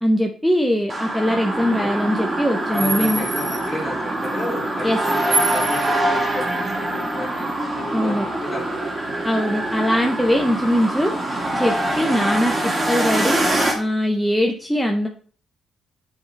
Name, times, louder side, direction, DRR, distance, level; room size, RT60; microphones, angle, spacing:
voice 1, 0.0-3.2 4.8-5.0 7.9-8.3 9.2-11.1 11.5-13.4 13.8-15.1, equal, ahead, 3 dB, 0.7 m, -21 dB
sound 1, 0.9-13.7, right 1 dB, 25° right, 1.8 m, -24 dB
voice 2, 1.6-1.9 2.7-7.5 7.8-8.9, left 1 dB, 15° left, -4 dB, 2.4 m, -32 dB
8.1 x 3.6 x 3.4 m, 0.43 s
cardioid pair, 90°, 0 cm